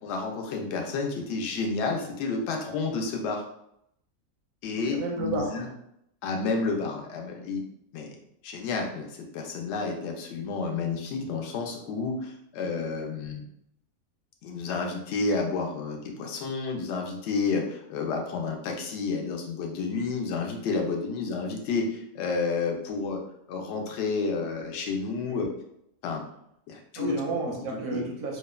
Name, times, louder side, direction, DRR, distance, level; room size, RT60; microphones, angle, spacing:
voice 1, 0.0-3.4 4.6-5.6 6.2-7.6 7.9-8.2 8.4-13.5 14.4-23.2 23.5-25.5 26.0-26.2 26.7-27.2 27.9-28.0, left 4 dB, 65° left, 2 dB, 0.7 m, -30 dB
voice 2, 4.7-5.7 13.1-13.2 25.3-25.5 27.0-28.4, right 3 dB, 85° right, 0 dB, 1.0 m, -32 dB
2.8 x 2.1 x 2.3 m, 0.76 s
omnidirectional pair, 1.4 m